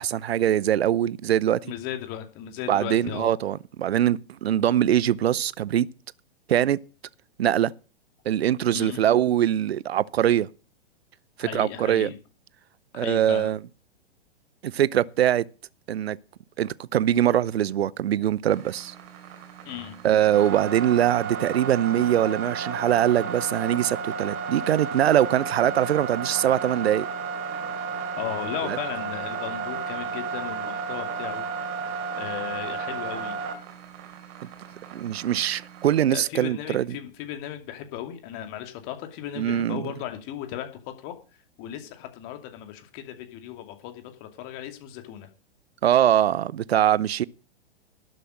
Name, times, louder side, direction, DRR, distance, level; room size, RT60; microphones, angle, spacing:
voice 1, 0.0-1.6 2.7-5.9 6.5-6.8 7.4-7.7 8.3-10.5 11.4-12.1 12.9-13.6 14.6-15.4 15.9-16.2 16.6-18.9 20.0-27.1 28.6-28.8 34.9-36.9 39.4-39.8 45.8-47.2, right 11 dB, 70° right, 0.8 m, -22 dB
voice 2, 1.6-3.3 8.7-9.0 11.4-12.2 12.9-13.5 19.6-19.9 28.2-31.7 32.2-33.4 36.1-40.7 41.0-41.1 41.6-45.3, left 11 dB, 40° left, 2.5 m, -36 dB
sound 1, 18.4-36.0, right 5 dB, 45° right, 3.3 m, -33 dB
12.0 x 7.8 x 6.4 m
hypercardioid pair, 110°, 32 cm